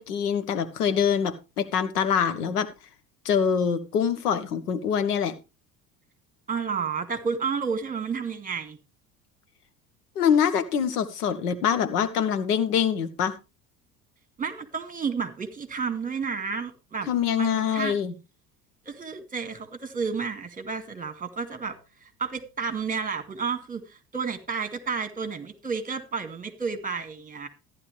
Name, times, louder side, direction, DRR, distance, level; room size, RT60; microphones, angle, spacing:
voice 1, 0.0-2.7 3.2-5.3 10.1-13.3 17.1-18.1, left 7 dB, 75° left, 11 dB, 1.4 m, -24 dB
voice 2, 6.5-8.8 14.4-17.1 17.4-17.9 18.9-21.7 22.0-27.5, right 5 dB, 15° right, 9 dB, 2.2 m, -31 dB
14.5 x 10.5 x 3.3 m, 0.29 s
figure-of-eight pair, 65°, 47 cm